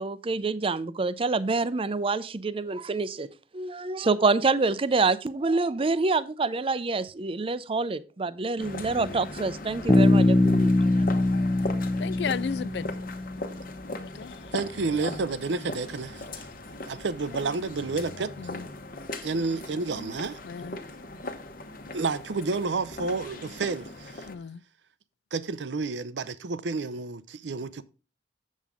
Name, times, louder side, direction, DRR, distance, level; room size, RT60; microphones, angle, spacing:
voice 1, 0.0-3.3 3.5-10.7, right 3 dB, 30° right, 0.5 m, -27 dB
sound 1, 8.6-24.4, left 2 dB, 55° left, 1.1 m, -39 dB
Bass guitar, 9.9-13.6, left 2 dB, 20° left, 0.6 m, -22 dB
voice 2, 12.0-12.9 14.0-14.3 18.4-18.7 20.4-20.8 24.3-24.6, left 6 dB, 70° left, 0.4 m, -34 dB
voice 3, 14.5-16.4 16.9-18.3 19.2-20.4 21.9-24.3 25.3-27.8, right 3 dB, 90° right, 0.6 m, -30 dB
7.4 x 7.3 x 3.6 m
head